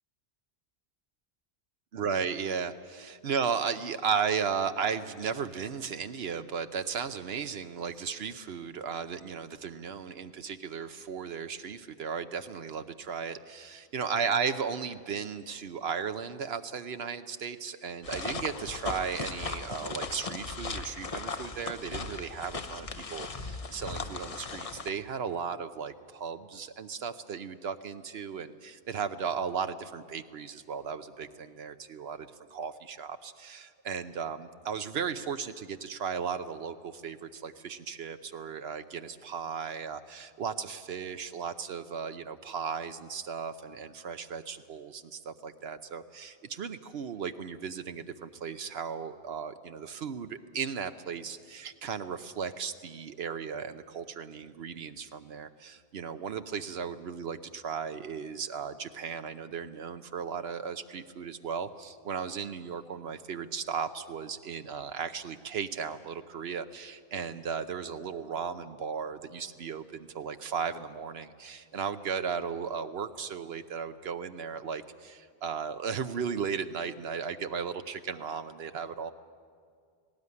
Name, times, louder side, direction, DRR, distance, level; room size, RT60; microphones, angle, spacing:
voice 1, 1.9-79.1, right 6 dB, 75° right, 9 dB, 1.0 m, -35 dB
sound 1, 18.0-24.9, left 4 dB, 35° left, 0.9 m, -37 dB
18.5 x 18.0 x 9.6 m, 2.2 s
omnidirectional pair, 1.1 m